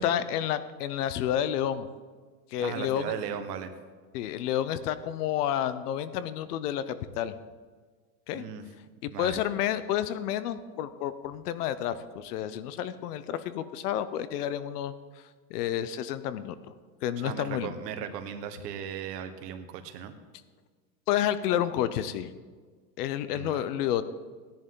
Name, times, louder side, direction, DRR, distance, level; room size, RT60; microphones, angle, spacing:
voice 1, 0.0-1.9 2.5-3.1 4.1-7.3 8.3-8.5 9.0-14.9 15.5-16.5 17.0-17.7 21.1-22.3 23.0-24.0, left 10 dB, 70° left, 13 dB, 0.9 m, -30 dB
voice 2, 2.6-3.7 8.3-8.7 9.1-9.4 17.2-20.2 23.3-23.6, right 8 dB, 75° right, 7 dB, 1.5 m, -37 dB
17.5 x 10.5 x 3.8 m, 1.5 s
supercardioid pair, 175°, 49 cm